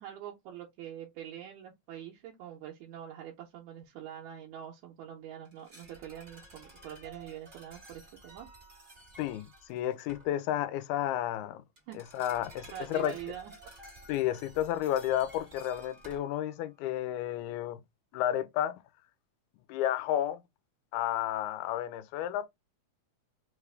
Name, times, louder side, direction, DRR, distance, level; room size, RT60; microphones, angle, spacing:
voice 1, 0.0-8.5 11.9-12.0 12.7-13.5, right 10 dB, 90° right, 2.1 m, -44 dB
sound 1, 5.5-10.4 11.8-16.7 17.0-17.1, right 2 dB, 25° right, 1.2 m, -53 dB
voice 2, 9.2-11.6 11.9-13.1 14.1-17.8 18.1-18.8 19.7-20.4 20.9-22.5, left 12 dB, 90° left, 2.0 m, -32 dB
4.9 x 2.4 x 3.3 m
omnidirectional pair, 3.3 m